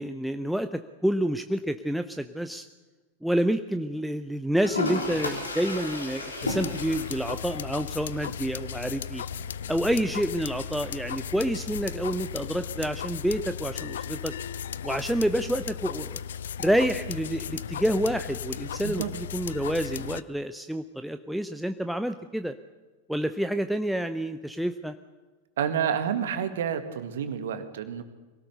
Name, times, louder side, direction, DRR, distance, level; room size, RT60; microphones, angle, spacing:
voice 1, 0.0-2.6 3.2-9.2 9.7-14.3 14.8-16.2 16.6-22.6 23.1-24.9, equal, ahead, 9 dB, 0.7 m, -28 dB
Toilet flush, 4.6-12.6, left 2 dB, 80° left, 3.7 m, -36 dB
sound 1, 6.4-20.2, left 8 dB, 60° left, 0.6 m, -36 dB
voice 2, 25.6-28.0, right 8 dB, 60° right, 9 dB, 1.9 m, -29 dB
24.0 x 17.5 x 6.8 m, 1.3 s
figure-of-eight pair, 90°, 0 cm